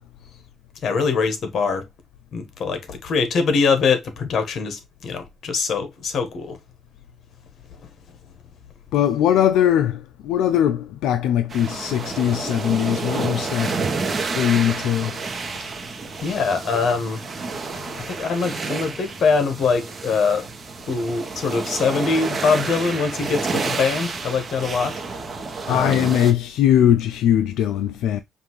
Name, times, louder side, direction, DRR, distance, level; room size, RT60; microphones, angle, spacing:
voice 1, 0.8-1.8 2.3-6.6 16.2-17.2 17.7-20.4 20.9-24.9 25.7-26.1, left 5 dB, 60° left, 1.2 m, -23 dB
voice 2, 8.9-13.8 14.3-15.2 24.6-24.7 25.7-28.2, left 10 dB, 90° left, 0.3 m, -20 dB
sound 1, 11.5-26.3, right 4 dB, 40° right, 0.9 m, -30 dB
5.1 x 2.6 x 3.0 m
cardioid pair, 90°, 0 cm